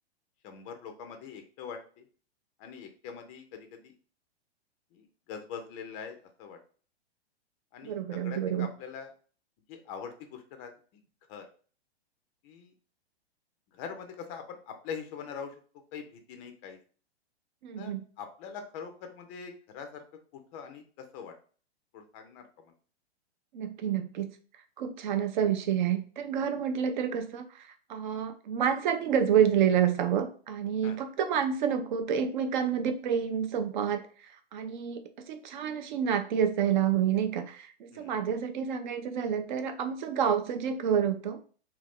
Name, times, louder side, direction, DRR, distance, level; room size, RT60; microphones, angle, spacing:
voice 1, 0.4-2.0 2.6-3.9 4.9-6.6 7.7-9.1 9.7-11.0 11.3-11.4 12.4-12.7 13.7-15.5 15.9-16.8 17.8-17.9 18.2-20.0 20.5-21.3 21.9-22.7 28.0-28.2 30.8-31.0 37.9-38.2, left 6 dB, 25° left, 6 dB, 0.4 m, -43 dB
voice 2, 7.8-8.7 17.6-18.0 23.5-24.3 24.8-41.4, right 8 dB, 45° right, 8 dB, 0.5 m, -29 dB
2.6 x 2.3 x 3.5 m, 0.40 s
hypercardioid pair, 120°, 33 cm